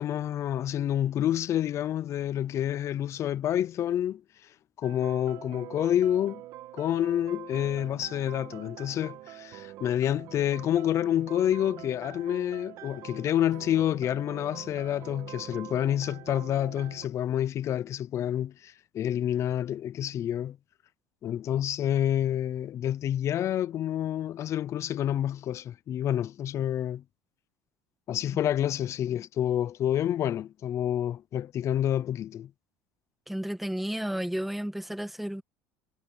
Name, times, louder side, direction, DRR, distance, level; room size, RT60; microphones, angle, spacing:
voice 1, 0.0-4.2 4.8-6.4 6.7-20.6 21.2-27.0 28.1-32.5, left 11 dB, 40° left, 0.5 m, -28 dB
sound 1, 4.8-17.1, right 15 dB, 60° right, 2.6 m, -45 dB
voice 2, 33.3-35.4, equal, ahead, 1.8 m, -32 dB
cardioid pair, 135°, 8 cm